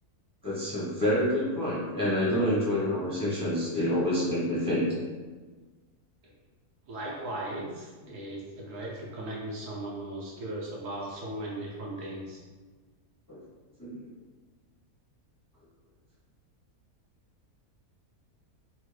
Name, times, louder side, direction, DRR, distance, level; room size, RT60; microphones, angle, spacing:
voice 1, 0.4-4.9 13.3-13.4 13.8-14.1, left 1 dB, 25° left, -8 dB, 0.4 m, -27 dB
voice 2, 6.9-12.4, right 1 dB, 65° right, -3 dB, 1.0 m, -37 dB
3.3 x 2.1 x 3.1 m, 1.4 s
omnidirectional pair, 1.6 m